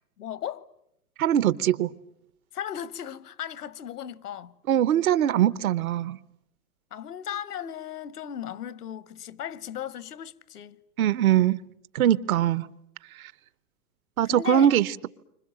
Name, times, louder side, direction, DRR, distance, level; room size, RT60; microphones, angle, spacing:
voice 1, 0.2-0.7 2.5-4.5 6.9-10.8 12.4-12.5 14.2-14.7, left 10 dB, 90° left, 1.0 m, -36 dB
voice 2, 1.2-1.9 4.7-6.2 11.0-11.6 11.9-12.7 13.2-13.3 14.2-15.1, right 11 dB, 65° right, 1.0 m, -22 dB
29.5 x 25.5 x 7.7 m
hypercardioid pair, 140°, 45 cm